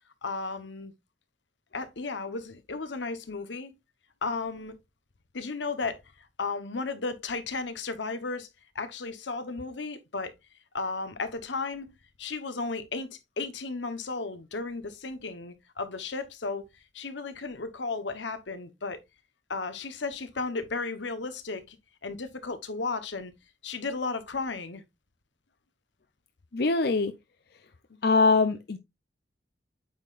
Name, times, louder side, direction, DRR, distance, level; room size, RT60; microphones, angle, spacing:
voice 1, 0.2-0.9 1.7-3.7 4.2-4.8 5.3-8.5 8.7-10.3 10.7-11.9 12.2-16.6 16.9-19.0 19.5-21.8 22.0-23.3 23.6-24.8, left 3 dB, 85° left, 1.0 m, -34 dB
voice 2, 26.5-27.1 28.0-28.8, left 3 dB, 60° left, 0.6 m, -22 dB
8.7 x 5.7 x 2.5 m
head